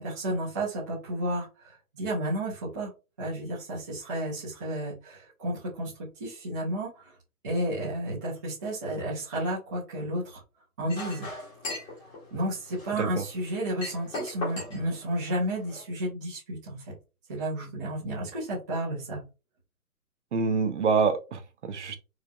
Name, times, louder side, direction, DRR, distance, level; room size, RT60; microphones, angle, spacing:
voice 1, 0.0-2.9 3.2-7.1 7.4-10.4 10.8-11.3 12.3-16.9 17.3-19.2, right 1 dB, 15° right, -7 dB, 0.5 m, -32 dB
Chink clink, 10.9-15.8, left 2 dB, 10° left, 0.9 m, -40 dB
voice 2, 20.3-22.0, right 5 dB, 50° right, 9 dB, 0.7 m, -26 dB
4.5 x 2.3 x 2.3 m, 0.30 s
hypercardioid pair, 145°, 45 cm